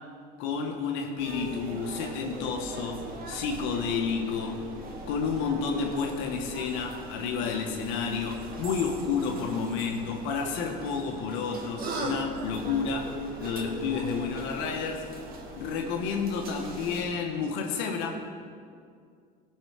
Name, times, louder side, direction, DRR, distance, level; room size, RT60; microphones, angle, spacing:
voice 1, 0.4-4.6 5.1-15.1 15.6-18.3, left 5 dB, 75° left, 2 dB, 1.4 m, -30 dB
sound 1, 1.2-17.1, right 2 dB, 50° right, 2.1 m, -40 dB
17.0 x 5.8 x 5.0 m, 2.3 s
supercardioid pair, 90°, 20 cm